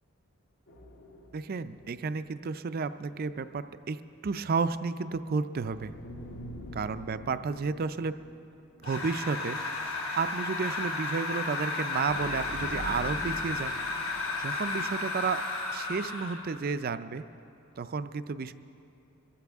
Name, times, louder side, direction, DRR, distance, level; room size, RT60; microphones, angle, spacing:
sound 1, 0.7-2.7 3.0-3.1 5.6-9.1 9.4-9.5 12.1-15.4, left 1 dB, 50° left, 0.9 m, -45 dB
voice 1, 1.3-5.9 6.7-8.2 8.8-9.6 10.2-13.7 14.4-15.4 15.7-17.2 17.8-18.5, right 5 dB, 40° right, 12 dB, 0.4 m, -32 dB
sound 2, 8.8-16.5, left 3 dB, 70° left, 2.7 m, -33 dB
24.5 x 14.0 x 3.5 m, 2.8 s
head